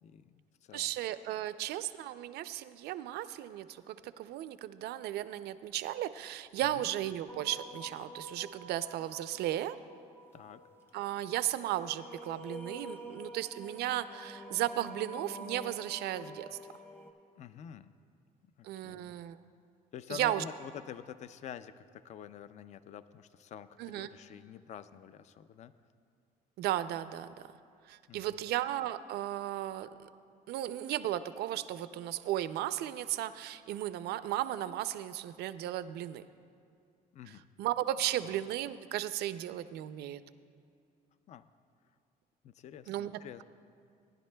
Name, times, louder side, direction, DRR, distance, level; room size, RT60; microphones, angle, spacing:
voice 1, 0.0-0.9 6.6-6.9 10.3-10.6 17.4-17.9 18.6-19.1 19.9-25.7 28.1-28.5 37.1-37.5 38.2-38.3 41.3-41.4 42.4-43.4, left 8 dB, 45° left, 14 dB, 0.4 m, -48 dB
voice 2, 0.7-9.8 10.9-16.6 18.6-19.4 20.1-20.4 23.8-24.1 26.6-27.3 27.9-29.9 30.5-36.2 37.6-40.2 42.9-43.4, right 13 dB, 75° right, 13 dB, 0.4 m, -35 dB
sound 1, 7.3-17.1, equal, 15° left, 0.9 m, -48 dB
18.5 x 10.5 x 2.2 m, 2.3 s
cardioid pair, 110°, 17 cm